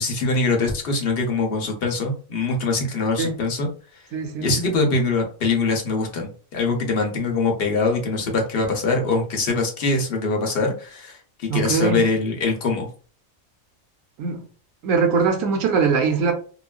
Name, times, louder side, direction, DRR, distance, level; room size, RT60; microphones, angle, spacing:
voice 1, 0.0-3.7 4.4-12.9, left 3 dB, 55° left, 0.8 m, -23 dB
voice 2, 4.1-4.5 11.5-12.0 14.2-14.4 14.8-16.3, right 5 dB, 85° right, 1.0 m, -21 dB
3.0 x 2.4 x 2.3 m
omnidirectional pair, 1.3 m